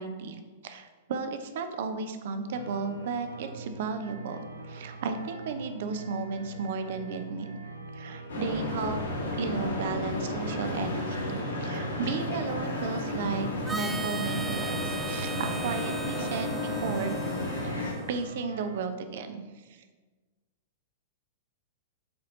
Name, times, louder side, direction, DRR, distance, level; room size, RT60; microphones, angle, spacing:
voice 1, 0.0-4.4 4.7-7.5 7.9-9.0 9.4-11.3 11.6-17.2 17.6-19.4 19.7-19.8, right 4 dB, 55° right, 9 dB, 0.7 m, -34 dB
sound 1, 2.5-18.8, right 3 dB, 85° right, 1.0 m, -44 dB
sound 2, 8.3-17.9, left 1 dB, 70° left, 2.1 m, -33 dB
Harmonica, 13.6-18.4, right 4 dB, 10° right, 0.4 m, -38 dB
7.7 x 4.2 x 4.2 m, 1.3 s
figure-of-eight pair, 105°, 0 cm